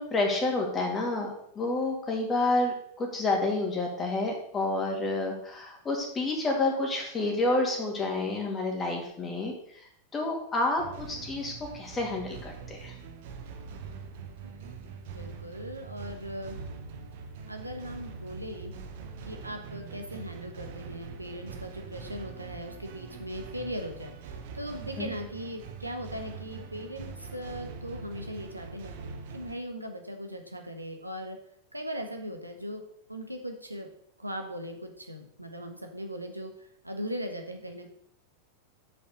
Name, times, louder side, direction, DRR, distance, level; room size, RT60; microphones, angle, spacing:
voice 1, 0.0-9.5 10.1-12.9 25.0-25.1, left 2 dB, 20° left, 1 dB, 2.5 m, -29 dB
sound 1, 10.8-29.5, right 5 dB, 55° right, 1.0 m, -43 dB
voice 2, 14.4-16.6 17.5-18.7 19.2-28.9 29.3-31.4 31.7-32.8 33.1-33.9 34.2-36.5 36.8-37.9, equal, 85° right, 4 dB, 1.3 m, -39 dB
7.5 x 5.4 x 6.6 m, 0.68 s
figure-of-eight pair, 90°, 0 cm